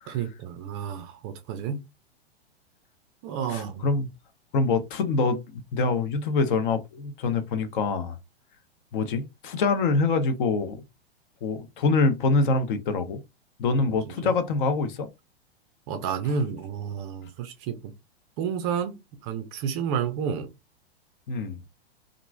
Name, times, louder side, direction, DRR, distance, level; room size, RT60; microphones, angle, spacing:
voice 1, 0.1-1.8 3.2-3.9 13.8-13.9 14.2-14.3 15.9-17.9 18.4-20.5, right 7 dB, 30° right, 0.4 m, -31 dB
voice 2, 3.5-4.1 4.5-8.2 8.9-10.8 11.4-13.2 13.6-15.1 21.3-21.6, left 3 dB, 50° left, 0.7 m, -25 dB
2.9 x 2.4 x 2.2 m
figure-of-eight pair, 105°, 32 cm